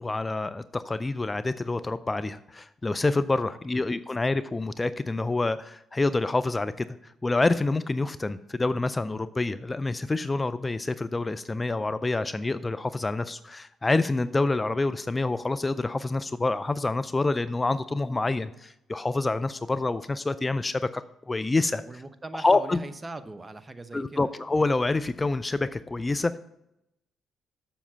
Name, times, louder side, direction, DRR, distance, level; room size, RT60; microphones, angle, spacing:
voice 1, 0.0-21.8 22.3-22.8 23.9-26.4, left 3 dB, 25° left, 14 dB, 0.4 m, -27 dB
voice 2, 21.8-24.3, right 2 dB, 25° right, 11 dB, 0.8 m, -40 dB
7.2 x 7.1 x 5.6 m, 0.83 s
supercardioid pair, 65°, 0 cm